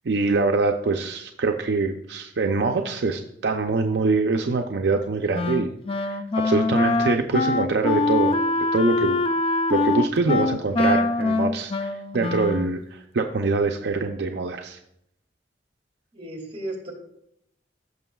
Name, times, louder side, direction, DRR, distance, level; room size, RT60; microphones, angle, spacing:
voice 1, 0.0-5.7 6.0-8.4 8.7-9.2 9.7-14.8, right 3 dB, 70° right, 4 dB, 0.5 m, -24 dB
Wind instrument woodwind instrument, 5.3-12.8, left 2 dB, 30° left, 0.3 m, -23 dB
voice 2, 16.1-16.9, right 1 dB, 30° right, 0 dB, 2.2 m, -34 dB
15.0 x 6.1 x 2.3 m, 0.77 s
head